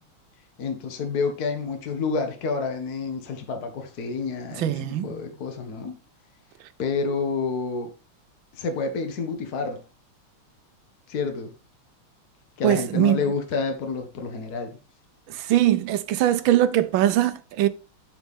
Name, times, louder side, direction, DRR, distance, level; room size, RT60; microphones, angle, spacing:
voice 1, 0.6-5.9 6.8-7.9 8.6-9.8 11.1-11.5 12.6-14.7, left 4 dB, 50° left, 1.5 m, -29 dB
voice 2, 4.6-5.1 12.6-13.2 15.3-17.7, right 12 dB, 75° right, 1.2 m, -21 dB
12.0 x 4.1 x 3.6 m
omnidirectional pair, 2.4 m